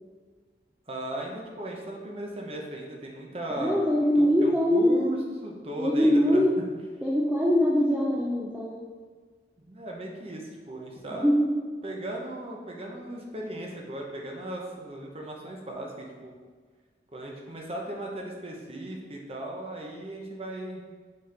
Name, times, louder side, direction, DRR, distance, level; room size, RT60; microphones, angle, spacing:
voice 1, 0.9-6.4 9.6-11.4 11.8-16.3 17.1-20.8, right 1 dB, 30° right, 0 dB, 0.8 m, -37 dB
voice 2, 3.5-5.3 5.8-6.5 7.0-8.8 11.2-11.5, equal, 5° right, -4 dB, 0.4 m, -23 dB
6.5 x 4.3 x 3.4 m, 1.5 s
head